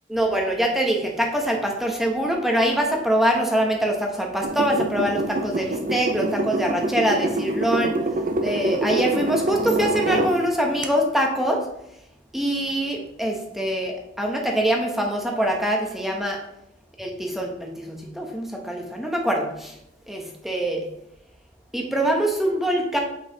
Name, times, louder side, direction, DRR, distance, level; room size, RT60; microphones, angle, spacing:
voice 1, 0.1-7.9 8.4-11.6 12.3-16.4 17.0-19.7 20.1-20.8 21.7-23.0, right 1 dB, ahead, 0 dB, 1.0 m, -24 dB
sound 1, 4.4-10.4 10.8-10.9, right 2 dB, 45° right, 0.7 m, -26 dB
7.5 x 5.8 x 4.0 m, 0.82 s
head